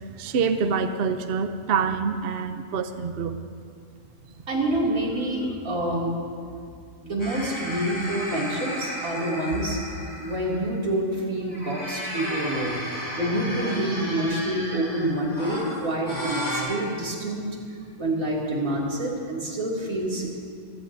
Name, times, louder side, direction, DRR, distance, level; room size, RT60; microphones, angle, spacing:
voice 1, 0.2-3.4, right 5 dB, 55° right, 8 dB, 0.8 m, -26 dB
voice 2, 4.5-6.1 7.0-9.8 10.2-12.8 13.1-17.4 18.0-20.4, right 1 dB, 80° right, -4 dB, 3.1 m, -27 dB
sound 1, 7.2-10.7 11.4-16.6, equal, 20° left, 4.8 m, -34 dB
25.5 x 16.0 x 2.7 m, 2.3 s
omnidirectional pair, 1.4 m